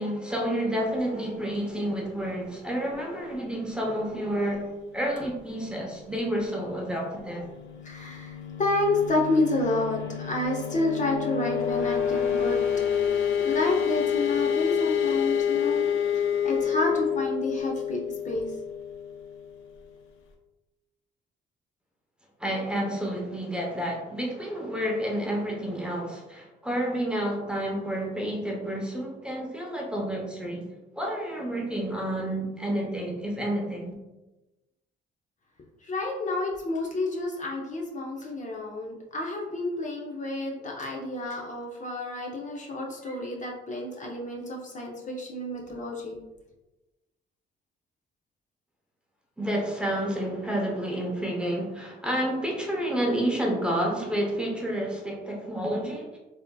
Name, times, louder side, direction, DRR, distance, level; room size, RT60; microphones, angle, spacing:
voice 1, 0.0-7.5 22.4-30.7 31.0-33.9 49.4-56.2, right 1 dB, 5° right, -2 dB, 0.7 m, -30 dB
sound 1, 7.4-19.9, left 8 dB, 85° left, 0.5 m, -28 dB
voice 2, 7.8-12.6 13.4-15.8 16.1-18.5 35.8-46.2, left 2 dB, 40° left, -1 dB, 0.6 m, -30 dB
3.4 x 2.6 x 2.2 m, 1.1 s
cardioid pair, 90°, 20 cm